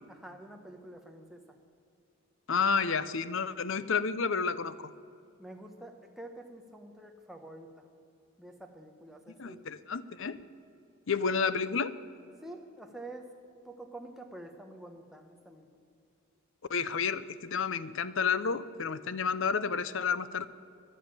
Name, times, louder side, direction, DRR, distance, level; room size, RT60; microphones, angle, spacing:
voice 1, 0.1-1.6 5.4-7.9 8.4-9.6 12.4-13.3 13.6-15.7, right 1 dB, ahead, 3 dB, 1.2 m, -47 dB
voice 2, 2.5-4.9 9.4-10.4 11.1-11.9 16.7-20.5, left 5 dB, 60° left, 15 dB, 0.6 m, -30 dB
13.5 x 11.0 x 8.8 m, 2.5 s
head